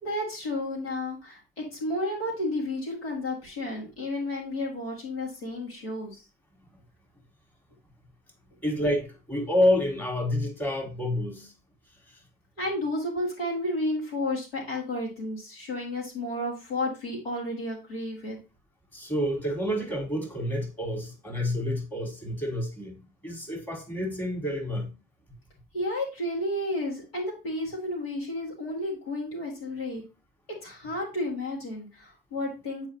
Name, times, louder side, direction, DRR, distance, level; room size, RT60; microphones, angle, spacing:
voice 1, 0.0-6.2 12.6-18.4 25.7-30.0 30.6-32.9, left 1 dB, 85° left, 2.1 m, -32 dB
voice 2, 8.6-11.5 12.1-12.2 18.9-24.9, left 1 dB, 5° left, 1.5 m, -28 dB
7.2 x 4.7 x 2.8 m
hypercardioid pair, 65°, 29 cm